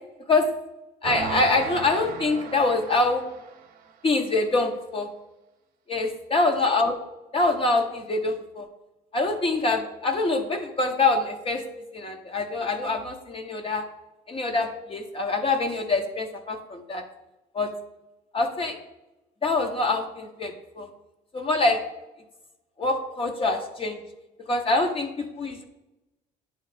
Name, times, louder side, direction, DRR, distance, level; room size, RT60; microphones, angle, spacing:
voice 1, 1.0-3.2 4.0-5.1 5.9-6.9 7.3-8.7 9.1-11.6 11.9-13.8 14.3-17.0 17.5-17.7 18.3-18.7 19.4-20.9 21.3-21.8 22.8-24.0 24.5-25.6, left 3 dB, 35° left, 4 dB, 0.7 m, -25 dB
sound 1, 1.0-3.8, right 7 dB, 55° right, 0.7 m, -35 dB
9.4 x 3.2 x 4.0 m, 0.98 s
cardioid pair, 110°, 17 cm